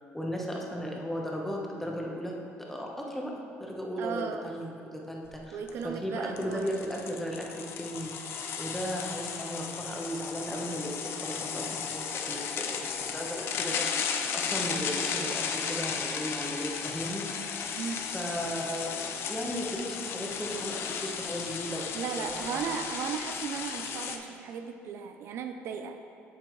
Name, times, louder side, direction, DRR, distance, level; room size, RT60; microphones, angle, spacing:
voice 1, 0.0-8.1 8.6-17.8 18.1-19.0 19.3-21.9 22.2-22.9, equal, 5° left, -1 dB, 1.1 m, -36 dB
voice 2, 4.0-4.5 5.5-6.7 17.7-18.1 21.9-26.0, right 7 dB, 60° right, 6 dB, 0.4 m, -36 dB
sound 1, 5.3-5.4 5.7-5.8 6.4-24.2, left 6 dB, 60° left, 0.6 m, -35 dB
7.7 x 7.6 x 3.1 m, 2.6 s
cardioid pair, 115°, 5 cm